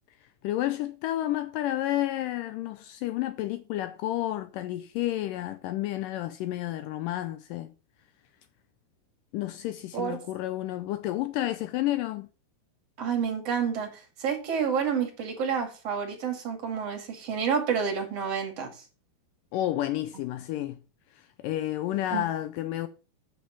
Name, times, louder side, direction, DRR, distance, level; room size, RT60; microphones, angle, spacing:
voice 1, 0.4-7.7 9.3-12.3 19.5-20.8 21.2-22.9, left 14 dB, 90° left, 1.9 m, -30 dB
voice 2, 13.0-18.7 22.1-22.3, right 7 dB, 45° right, 2.9 m, -29 dB
8.3 x 6.2 x 6.9 m
omnidirectional pair, 4.6 m